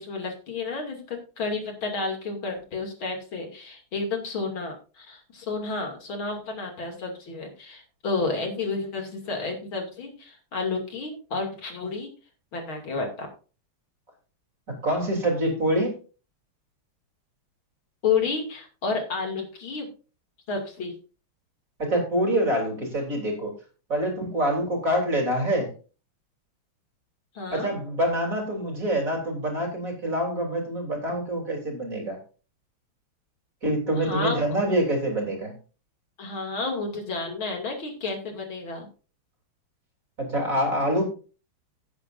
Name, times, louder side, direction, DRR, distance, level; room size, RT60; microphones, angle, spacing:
voice 1, 0.0-12.1 12.5-13.3 18.0-19.9 20.5-20.9 27.3-27.7 34.0-34.4 36.2-38.9, left 4 dB, 65° left, 2 dB, 3.4 m, -31 dB
voice 2, 14.7-16.0 21.8-23.5 23.9-25.7 27.5-32.2 33.6-35.5 40.2-41.1, right 1 dB, 35° right, 1 dB, 3.8 m, -26 dB
17.5 x 8.4 x 2.6 m, 0.35 s
omnidirectional pair, 2.4 m